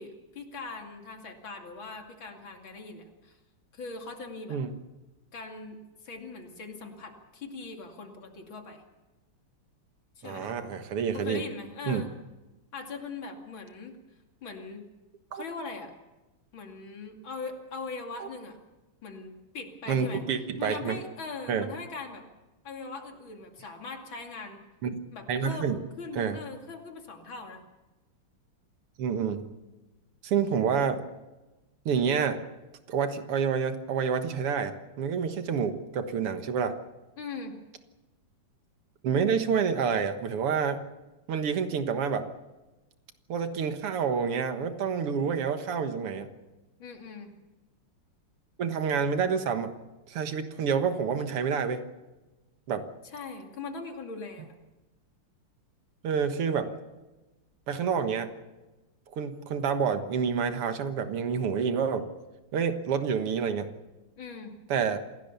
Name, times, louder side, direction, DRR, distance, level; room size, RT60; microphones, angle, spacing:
voice 1, 0.0-3.4 3.7-4.6 5.3-5.8 6.0-8.8 10.2-10.5 11.1-12.1 12.7-14.0 14.4-14.8 15.3-15.9 16.5-18.6 19.0-20.2 20.6-22.2 22.6-24.6 25.1-27.6 37.2-37.6 46.8-47.3 53.0-54.5 64.2-64.5, left 4 dB, 60° left, 4 dB, 3.3 m, -40 dB
voice 2, 10.2-11.4 11.9-12.1 15.3-15.4 18.2-18.3 19.9-21.0 21.5-21.7 24.8-25.0 25.3-25.8 26.2-26.4 29.0-29.4 30.2-31.0 31.9-32.4 32.9-36.7 39.0-40.8 41.3-42.3 43.3-46.3 48.6-49.7 50.1-51.8 52.7-52.9 56.0-56.7 57.7-58.3 59.1-62.1 62.5-63.7 64.7-65.0, right 6 dB, 90° right, 8 dB, 2.4 m, -28 dB
27.0 x 17.5 x 7.0 m, 1.1 s
omnidirectional pair, 2.4 m